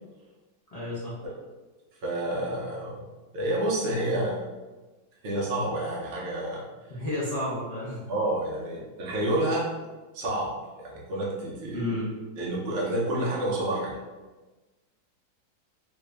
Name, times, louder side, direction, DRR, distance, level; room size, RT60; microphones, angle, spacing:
voice 1, 0.7-1.2 6.9-8.0 11.7-12.1, left 1 dB, 70° left, -9 dB, 0.3 m, -31 dB
voice 2, 2.0-3.0 3.3-4.4 5.2-7.0 8.1-9.7 10.1-12.0 12.4-13.9, right 1 dB, 75° right, -4 dB, 0.5 m, -29 dB
3.2 x 2.5 x 3.3 m, 1.2 s
omnidirectional pair, 2.0 m